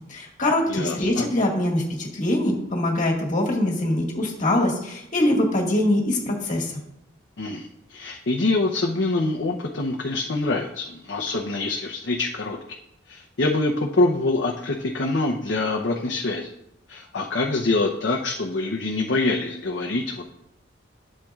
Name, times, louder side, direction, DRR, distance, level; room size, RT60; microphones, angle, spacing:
voice 1, 0.1-6.7, left 1 dB, 45° left, -1 dB, 1.7 m, -23 dB
voice 2, 0.7-1.3 7.4-12.6 13.1-16.5 16.9-20.3, left 2 dB, 65° left, 0 dB, 0.7 m, -25 dB
11.5 x 7.5 x 2.4 m, 0.82 s
head